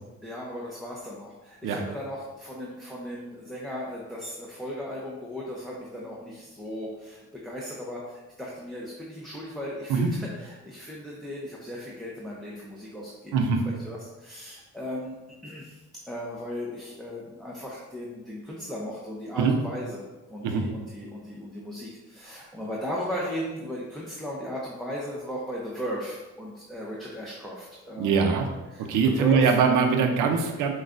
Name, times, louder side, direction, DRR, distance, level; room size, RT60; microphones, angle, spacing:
voice 1, 0.2-15.2 15.4-28.3 28.7-29.6, equal, ahead, -5 dB, 0.6 m, -36 dB
voice 2, 28.0-28.5 28.9-30.7, right 5 dB, 85° right, 4 dB, 0.6 m, -22 dB
6.2 x 2.3 x 2.5 m, 1.1 s
cardioid pair, 90°, 30 cm